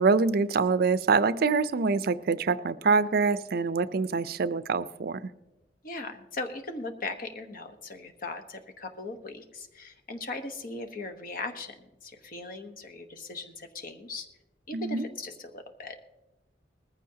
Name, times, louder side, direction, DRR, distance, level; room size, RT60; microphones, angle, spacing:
voice 1, 0.0-5.3 14.7-15.1, right 4 dB, 60° right, 15 dB, 0.5 m, -25 dB
voice 2, 5.8-11.7 12.0-14.3 14.7-16.0, left 2 dB, 50° left, 7 dB, 1.1 m, -38 dB
19.5 x 14.5 x 2.8 m, 0.99 s
head